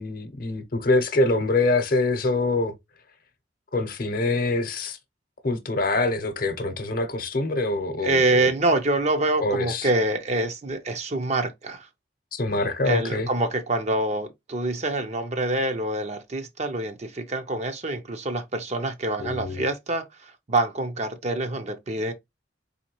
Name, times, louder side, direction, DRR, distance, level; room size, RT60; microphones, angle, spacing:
voice 1, 0.0-2.7 3.7-5.0 5.4-8.5 9.4-9.9 12.3-13.3 19.2-19.7, left 2 dB, 50° left, 0.8 m, -25 dB
voice 2, 8.0-11.9 12.8-22.1, right 2 dB, 35° right, 0.6 m, -26 dB
4.2 x 3.1 x 3.0 m
head